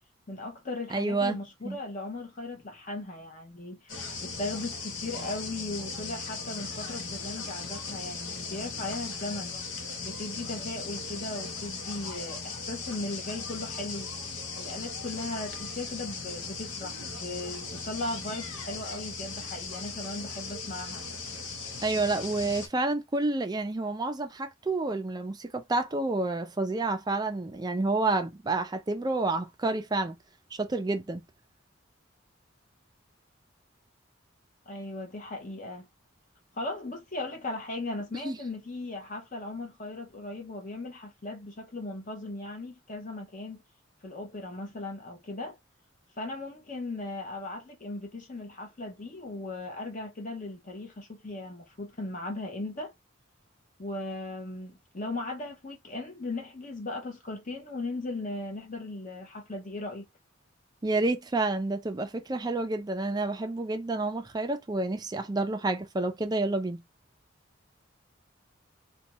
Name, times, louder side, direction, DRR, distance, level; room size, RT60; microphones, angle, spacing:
voice 1, 0.3-9.5 10.0-14.1 14.5-21.1 34.7-35.9 36.6-43.6 44.0-45.6 46.2-52.9 53.8-60.1, left 2 dB, 40° left, 0.9 m, -37 dB
voice 2, 0.9-1.4 1.6-1.8 21.8-30.1 30.5-31.2 38.2-38.4 60.8-66.8, right 2 dB, 20° right, 0.4 m, -29 dB
sound 1, 3.9-22.7, left 4 dB, 85° left, 0.8 m, -38 dB
2.6 x 2.3 x 2.9 m
head